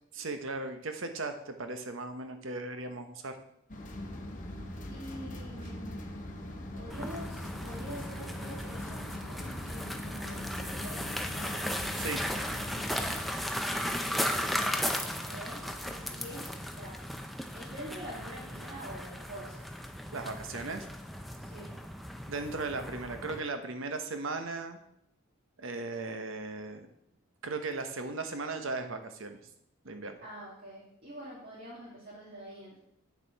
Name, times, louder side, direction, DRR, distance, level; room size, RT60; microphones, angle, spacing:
voice 1, 0.1-3.4 12.0-12.2 20.1-20.9 22.3-24.8 25.6-26.9 27.4-29.4 29.8-30.2, right 3 dB, 65° right, 7 dB, 1.0 m, -37 dB
sound 1, 3.7-13.2, left 1 dB, 35° left, 1.0 m, -41 dB
voice 2, 4.9-6.0 6.7-11.7 14.0-14.8 15.2-17.0 17.5-19.6 21.4-21.7 30.2-32.8, equal, 45° right, -7 dB, 2.4 m, -46 dB
sound 2, 6.9-23.4, equal, ahead, 0.5 m, -36 dB
8.4 x 6.9 x 4.6 m, 0.76 s
head